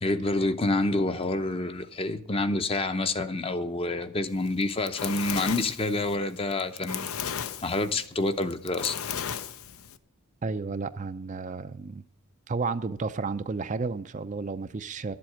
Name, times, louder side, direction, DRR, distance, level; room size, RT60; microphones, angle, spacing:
voice 1, 0.0-7.1 7.6-9.0, left 2 dB, 25° left, 0.7 m, -28 dB
Fire, 4.5-10.0, left 8 dB, 70° left, 0.7 m, -35 dB
voice 2, 10.4-12.0 12.5-15.1, right 4 dB, 35° right, 0.5 m, -32 dB
12.0 x 7.7 x 8.5 m
head